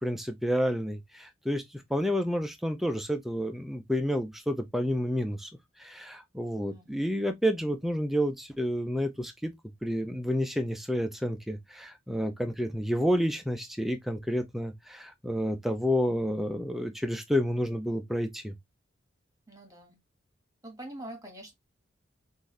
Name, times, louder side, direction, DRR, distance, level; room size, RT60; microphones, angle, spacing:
voice 1, 0.0-1.6 1.9-5.5 5.8-9.5 9.8-18.5, equal, ahead, 0.6 m, -30 dB
voice 2, 19.5-20.0 20.6-21.5, right 1 dB, 15° right, 1.6 m, -44 dB
6.0 x 2.7 x 3.2 m
head